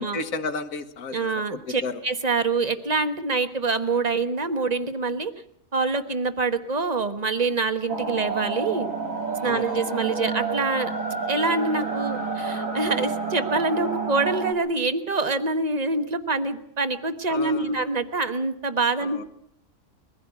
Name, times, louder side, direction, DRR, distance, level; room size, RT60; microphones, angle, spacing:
voice 1, 0.0-2.0 9.4-9.8 17.3-17.9 19.0-19.2, left 3 dB, 85° left, 8 dB, 1.6 m, -33 dB
voice 2, 1.1-5.3 5.7-8.9 9.4-10.9 11.3-19.2, right 3 dB, 30° right, 9 dB, 1.3 m, -25 dB
sound 1, 7.9-14.5, right 4 dB, 75° right, 3.2 m, -29 dB
21.5 x 15.5 x 8.3 m, 0.71 s
omnidirectional pair, 1.4 m